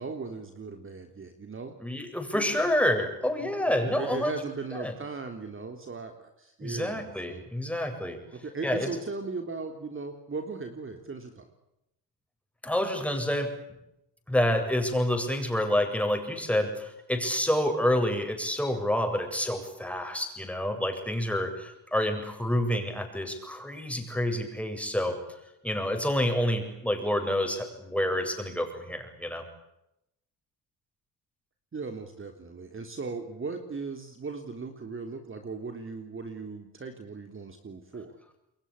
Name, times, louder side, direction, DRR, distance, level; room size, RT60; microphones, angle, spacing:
voice 1, 0.0-1.8 2.3-2.5 3.4-7.4 8.3-11.5 31.7-38.2, right 4 dB, 30° right, 6 dB, 3.5 m, -38 dB
voice 2, 1.8-4.3 4.8-4.9 6.6-8.2 8.6-8.9 12.6-13.5 14.3-25.2 25.6-29.4, left 1 dB, 5° left, 5 dB, 7.9 m, -28 dB
30.0 x 22.5 x 8.4 m, 0.86 s
cardioid pair, 95°, 41 cm